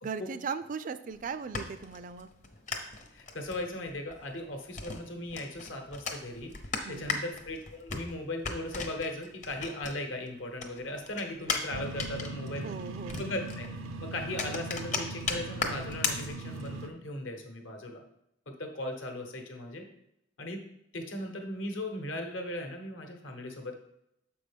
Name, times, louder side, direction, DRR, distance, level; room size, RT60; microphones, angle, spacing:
voice 1, 0.0-2.3 6.8-7.2 12.6-13.2, right 5 dB, 40° right, 13 dB, 0.3 m, -38 dB
sound 1, 1.1-10.3 10.6-16.8, left 4 dB, 35° left, 0.8 m, -37 dB
voice 2, 3.1-6.5 6.9-12.7 13.2-13.7 14.0-18.0 18.5-19.8 20.4-20.6 20.9-23.7, left 1 dB, 65° left, 3 dB, 1.0 m, -38 dB
sound 2, 11.7-16.9, right 2 dB, 85° right, 0.6 m, -40 dB
7.0 x 5.1 x 3.5 m, 0.80 s
head